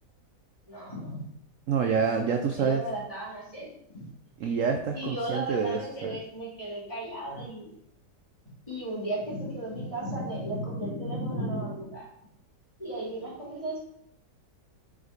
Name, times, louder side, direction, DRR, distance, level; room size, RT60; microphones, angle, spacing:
voice 1, 0.7-1.2 2.6-4.1 4.9-7.7 8.7-12.1 12.8-13.8, right 1 dB, 20° left, -6 dB, 2.3 m, -34 dB
voice 2, 1.7-2.8 4.4-6.2, right 6 dB, 70° right, 5 dB, 0.7 m, -27 dB
5.0 x 4.9 x 3.9 m, 0.75 s
omnidirectional pair, 1.9 m